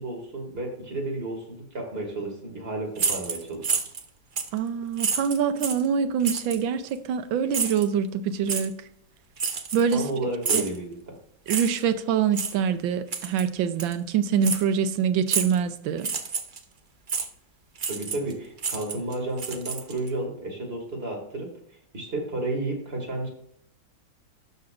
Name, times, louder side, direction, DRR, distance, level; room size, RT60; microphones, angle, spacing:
voice 1, 0.0-3.7 9.9-11.0 17.9-21.5 21.9-23.3, right 2 dB, 30° right, 2.5 m, -32 dB
sound 1, 3.0-4.0 4.4-4.6 5.0-5.9 6.2-6.6 7.5-7.9 8.5-8.7 9.4-10.1 10.4-10.8 11.5-11.8 12.3-12.5 13.1-13.4 13.8-13.9 14.4-14.6 15.3-15.6 16.0-16.6 17.1-17.3 17.8-18.3 18.6-20.1, right 5 dB, 65° right, 0.4 m, -29 dB
voice 2, 4.5-8.8 9.7-10.1 10.5-10.7 11.5-16.1, right 7 dB, 85° right, 1.5 m, -25 dB
12.0 x 6.8 x 2.5 m
omnidirectional pair, 2.1 m